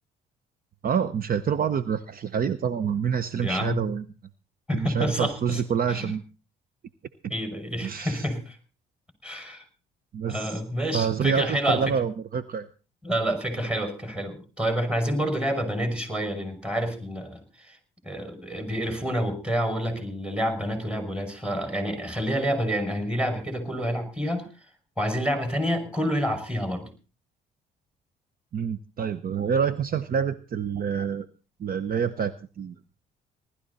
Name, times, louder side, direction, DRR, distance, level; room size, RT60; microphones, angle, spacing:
voice 1, 0.8-4.0 4.7-6.2 7.2-7.3 7.8-8.3 10.1-12.7 28.5-31.3 31.6-32.7, right 7 dB, 45° right, 13 dB, 0.9 m, -27 dB
voice 2, 3.4-3.9 4.7-5.6 5.9-6.1 7.3-8.6 9.2-9.6 10.3-11.8 13.0-17.4 17.7-17.8 18.0-24.4 25.0-26.9, equal, 5° right, 7 dB, 6.0 m, -28 dB
19.0 x 13.0 x 4.1 m, 0.34 s
supercardioid pair, 80°, 20 cm